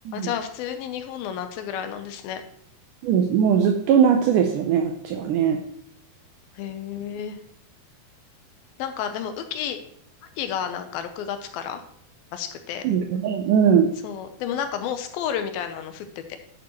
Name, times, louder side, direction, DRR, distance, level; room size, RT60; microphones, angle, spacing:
voice 1, 0.1-2.4 6.6-7.4 8.8-9.8 10.4-11.8 12.3-12.8 14.0-16.4, left 9 dB, 80° left, 7 dB, 2.5 m, -31 dB
voice 2, 3.0-5.6 12.8-13.9, right 7 dB, 85° right, 4 dB, 1.9 m, -20 dB
11.0 x 7.1 x 3.0 m, 0.68 s
omnidirectional pair, 4.4 m